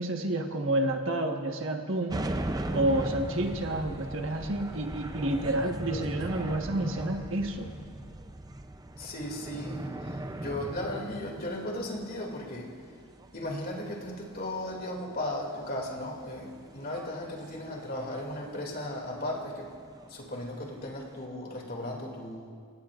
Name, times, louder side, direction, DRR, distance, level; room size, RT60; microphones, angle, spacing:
voice 1, 0.0-2.2 2.7-7.7, right 1 dB, 65° right, 3 dB, 1.4 m, -29 dB
sound 1, 2.1-21.3, right 1 dB, 15° right, 0.5 m, -39 dB
voice 2, 9.0-12.7 13.3-19.7 20.1-22.5, left 1 dB, 45° left, 0 dB, 2.6 m, -36 dB
28.0 x 18.0 x 2.5 m, 2.2 s
head